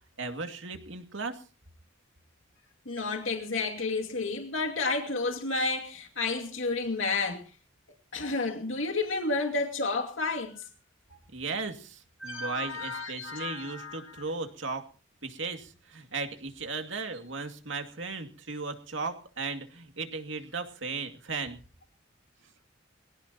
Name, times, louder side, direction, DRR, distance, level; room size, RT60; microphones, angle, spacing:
voice 1, 0.2-1.4 11.3-14.8 15.2-21.6, right 4 dB, 70° right, 2.4 m, -36 dB
voice 2, 2.9-7.5 8.1-10.7 12.2-14.2, left 3 dB, 85° left, 2.4 m, -31 dB
22.5 x 17.0 x 3.0 m
head